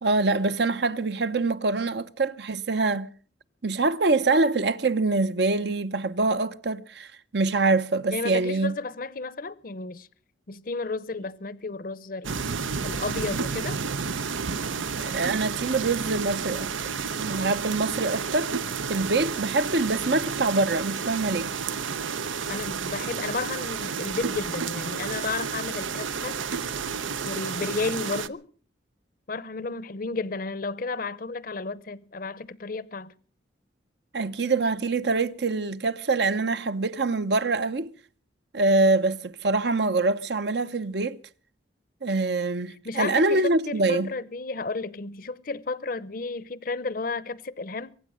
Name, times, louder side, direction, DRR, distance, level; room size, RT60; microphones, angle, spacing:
voice 1, 0.0-3.1 3.6-8.7 15.0-16.7 17.2-18.5 18.9-21.5 34.1-37.9 38.5-41.2 42.0-44.1, right 3 dB, 60° right, 0.8 m, -25 dB
voice 2, 8.1-10.1 10.5-12.4 12.8-13.8 22.5-26.4 27.2-28.4 29.3-33.1 42.8-48.0, left 3 dB, 45° left, 0.7 m, -32 dB
sound 1, 12.2-28.3, right 6 dB, 90° right, 0.7 m, -31 dB
23.5 x 9.2 x 6.4 m
head